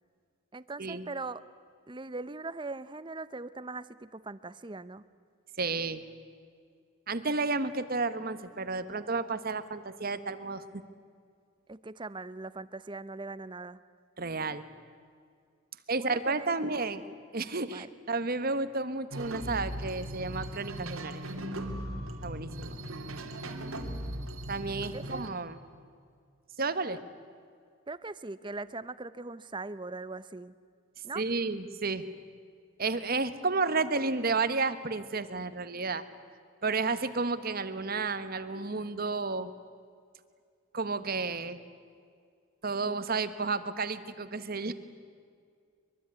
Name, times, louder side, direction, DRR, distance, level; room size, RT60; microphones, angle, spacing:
voice 1, 0.5-1.4 1.9-5.0 11.7-13.8 16.0-16.5 17.7-17.9 23.2-24.1 24.9-25.3 27.9-30.5 31.0-31.2, right 3 dB, 25° right, 15 dB, 0.7 m, -41 dB
voice 2, 5.6-6.0 7.1-10.8 14.2-14.6 15.9-17.0 17.3-21.2 22.2-22.8 24.5-25.6 26.6-27.0 31.1-32.0 32.8-36.0 36.6-39.5 40.7-41.6 42.6-44.7, right 3 dB, 45° right, 12 dB, 1.2 m, -32 dB
sound 1, 19.1-25.3, right 1 dB, 90° right, 2.7 m, -38 dB
24.0 x 23.0 x 9.6 m, 2.2 s
head